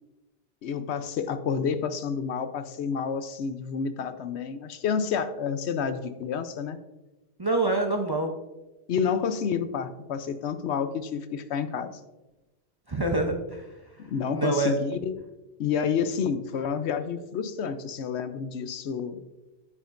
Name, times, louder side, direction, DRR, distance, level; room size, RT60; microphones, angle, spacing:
voice 1, 0.6-6.8 8.9-11.9 14.0-15.2 15.6-19.2, left 6 dB, 80° left, 10 dB, 0.9 m, -29 dB
voice 2, 7.4-8.3 12.9-13.7 14.3-14.7, right 2 dB, 25° right, 3 dB, 0.6 m, -26 dB
8.7 x 8.5 x 2.5 m, 1.0 s
omnidirectional pair, 1.1 m